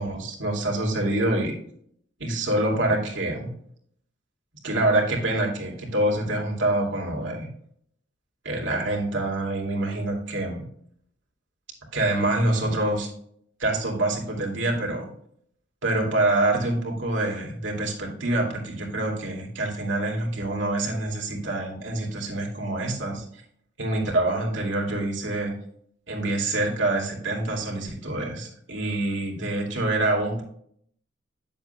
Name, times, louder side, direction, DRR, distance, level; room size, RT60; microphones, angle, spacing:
voice 1, 0.0-1.6 2.2-3.5 4.6-7.5 8.4-10.6 11.9-13.1 13.6-15.1 15.8-23.2 23.8-25.5 26.1-30.4, right 2 dB, 80° right, -1 dB, 2.6 m, -26 dB
9.9 x 7.5 x 2.2 m, 0.64 s
head